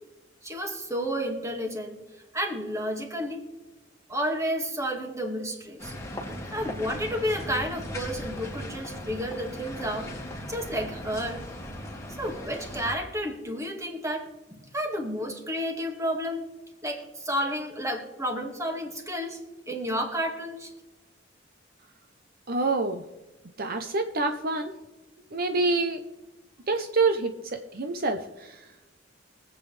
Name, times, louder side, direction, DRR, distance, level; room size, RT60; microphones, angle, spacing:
voice 1, 0.4-2.0 2.3-3.4 4.1-6.0 6.5-10.1 10.5-11.4 12.2-16.5 16.8-19.4 19.7-20.7, equal, 15° right, 3 dB, 2.1 m, -31 dB
sound 1, 5.8-12.9, left 1 dB, 15° left, 2.2 m, -38 dB
voice 2, 22.5-23.0 23.6-24.7 25.3-26.0 26.7-27.3 27.7-28.6, right 3 dB, 50° right, 6 dB, 0.9 m, -26 dB
23.5 x 8.5 x 3.4 m, 1.1 s
head